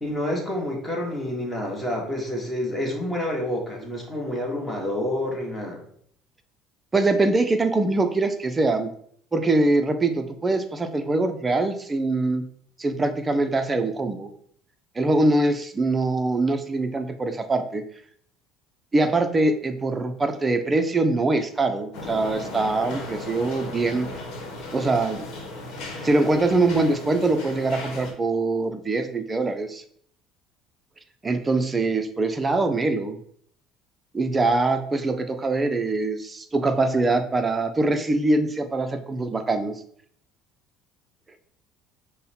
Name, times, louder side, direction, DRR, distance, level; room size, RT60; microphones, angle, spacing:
voice 1, 0.0-5.8, left 1 dB, 10° left, -1 dB, 1.3 m, -28 dB
voice 2, 6.9-8.9 9.3-12.5 12.8-14.3 15.0-17.8 18.9-24.1 24.7-25.2 26.0-29.8 31.2-33.2 34.1-39.8, right 2 dB, 20° right, 7 dB, 0.5 m, -23 dB
sound 1, 21.9-28.1, left 2 dB, 65° left, 1.1 m, -36 dB
5.4 x 2.1 x 4.1 m, 0.63 s
cardioid pair, 125°, 0 cm